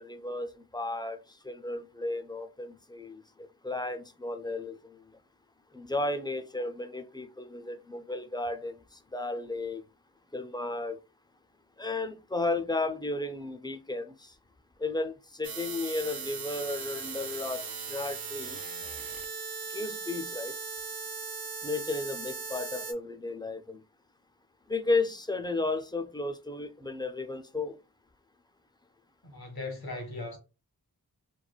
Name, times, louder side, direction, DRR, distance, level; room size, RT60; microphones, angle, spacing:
voice 1, 0.0-5.0 5.7-9.8 10.3-11.0 11.8-14.3 14.8-18.6 19.7-20.5 21.6-23.8 24.7-27.8, left 2 dB, 15° left, 0.3 m, -34 dB
sound 1, 15.4-22.9, right 5 dB, 70° right, 0.5 m, -38 dB
voice 2, 29.2-30.4, left 2 dB, 75° left, 0.9 m, -38 dB
3.1 x 2.2 x 2.2 m
wide cardioid pair, 55°, 37 cm